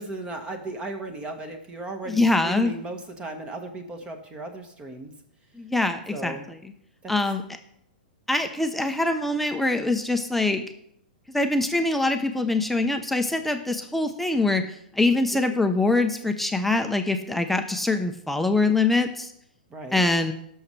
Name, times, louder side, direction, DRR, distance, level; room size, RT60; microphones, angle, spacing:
voice 1, 0.0-5.1 6.1-6.5 7.0-7.1 19.7-20.0, right 2 dB, 20° right, 6 dB, 1.5 m, -36 dB
voice 2, 2.1-2.7 5.6-6.4 7.1-7.4 8.3-10.6 11.3-14.6 14.9-19.3 19.9-20.3, left 2 dB, 5° left, 5 dB, 0.8 m, -23 dB
17.0 x 6.5 x 3.3 m, 0.74 s
hypercardioid pair, 120°, 5 cm